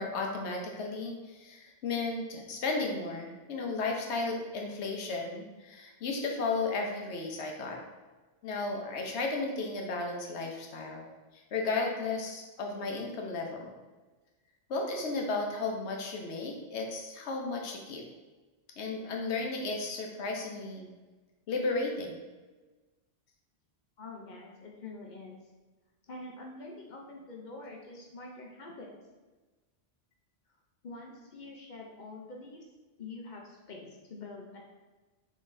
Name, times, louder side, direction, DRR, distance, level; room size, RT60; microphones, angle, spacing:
voice 1, 0.0-7.8 8.4-11.0 11.3-13.7 14.7-18.0 18.8-20.9 21.5-22.2, left 3 dB, 80° left, 1 dB, 0.9 m, -34 dB
voice 2, 24.0-25.4 26.1-28.9 30.8-32.6 33.0-34.7, left 2 dB, 55° left, -1 dB, 0.6 m, -45 dB
3.7 x 3.6 x 2.5 m, 1.2 s
omnidirectional pair, 1.1 m